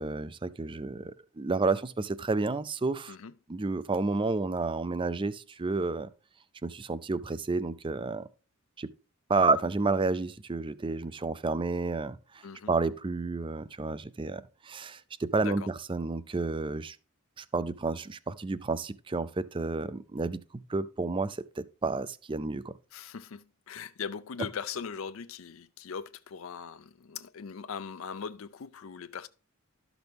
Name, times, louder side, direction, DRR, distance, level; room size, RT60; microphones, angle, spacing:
voice 1, 0.0-3.1 3.5-6.1 6.6-8.3 8.8-8.9 9.3-12.2 12.7-17.0 17.4-22.7, right 3 dB, 25° right, 0.4 m, -30 dB
voice 2, 12.4-12.7 15.4-15.7 22.9-29.3, left 6 dB, 70° left, 0.5 m, -40 dB
12.5 x 6.1 x 3.5 m
head